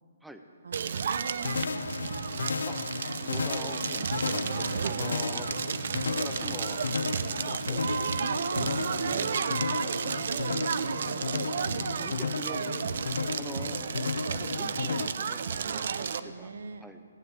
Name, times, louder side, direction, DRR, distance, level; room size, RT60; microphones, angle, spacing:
voice 1, 0.6-2.7 3.1-3.5 4.3-5.1 8.2-9.5 9.9-13.0 15.6-16.9, right 4 dB, 70° right, 11 dB, 0.9 m, -41 dB
Crackle, 0.7-16.2, right 6 dB, 50° right, 0.5 m, -32 dB
sound 1, 1.4-15.1, left 4 dB, 80° left, 0.5 m, -34 dB
voice 2, 3.2-5.5 6.2-7.9 12.0-12.7 13.3-13.8 14.3-15.8 16.2-16.5 16.8-17.0, right 1 dB, ahead, 6 dB, 0.5 m, -44 dB
15.5 x 9.4 x 8.1 m, 2.3 s
hypercardioid pair, 170°, 0 cm